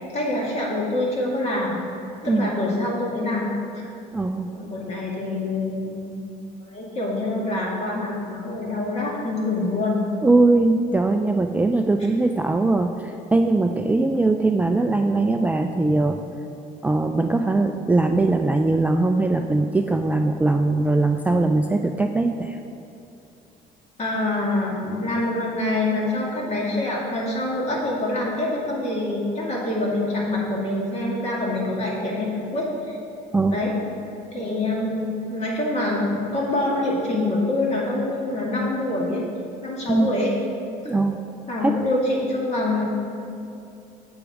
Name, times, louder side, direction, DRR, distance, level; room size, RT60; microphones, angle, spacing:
voice 1, 0.1-1.8 2.2-3.5 3.8-3.9 4.5-6.2 6.7-10.0 24.0-33.0 33.5-33.7 34.3-39.3 39.6-40.3 40.8-40.9 41.5-42.8, left 2 dB, 40° left, -3 dB, 2.3 m, -25 dB
voice 2, 4.1-4.5 10.2-16.2 16.8-22.6 33.3-33.6 39.9-40.1 40.8-41.2 41.6-41.9, right 2 dB, 10° right, 4 dB, 0.3 m, -21 dB
8.0 x 6.9 x 4.9 m, 2.6 s
cardioid pair, 110°, 17 cm